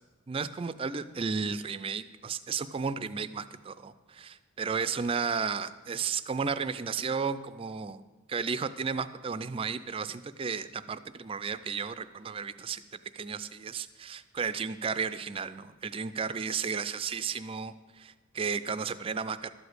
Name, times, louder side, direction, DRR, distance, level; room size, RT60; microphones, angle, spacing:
voice 1, 0.3-8.0 8.3-12.8 13.1-19.5, right 5 dB, 25° right, 13 dB, 0.3 m, -33 dB
12.0 x 5.0 x 7.9 m, 1.3 s
head